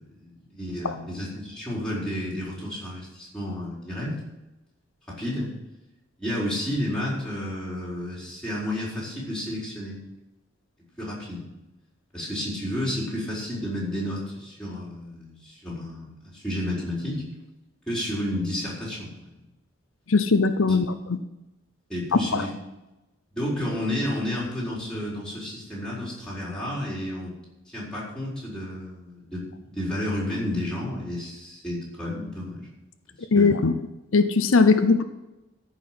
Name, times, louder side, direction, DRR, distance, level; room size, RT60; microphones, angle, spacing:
voice 1, 0.0-4.2 5.1-5.5 6.2-10.0 11.0-11.5 12.1-17.2 17.9-19.3 20.7-20.8 21.9-22.5 23.3-27.3 27.7-32.7 33.3-33.6, left 1 dB, 5° left, -6 dB, 4.5 m, -31 dB
voice 2, 20.1-21.2 22.3-22.5 33.3-33.7 34.1-35.0, left 4 dB, 80° left, 9 dB, 0.7 m, -20 dB
14.0 x 6.0 x 7.6 m, 1.0 s
head